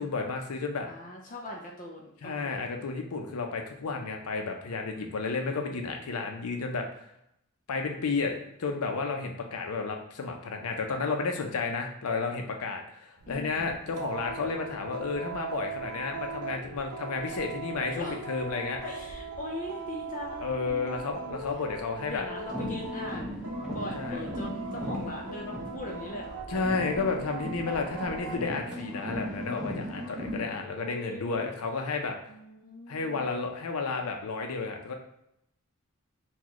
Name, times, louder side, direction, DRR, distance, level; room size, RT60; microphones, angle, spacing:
voice 1, 0.0-0.9 2.2-6.9 7.7-8.3 8.6-18.8 20.4-22.2 23.9-24.2 26.5-32.2 32.9-34.9, left 4 dB, 85° left, 3 dB, 0.6 m, -32 dB
voice 2, 0.8-2.7 13.3-13.8 17.9-18.2 18.8-21.4 22.0-23.4 23.7-26.4 30.7-31.5 32.3-33.3, left 1 dB, 35° left, -1 dB, 0.5 m, -40 dB
sound 1, 13.2-28.4, right 4 dB, 80° right, 0.6 m, -40 dB
sound 2, 22.4-26.3 26.6-30.5, equal, 5° right, 0.6 m, -37 dB
3.9 x 2.3 x 3.0 m, 0.78 s
head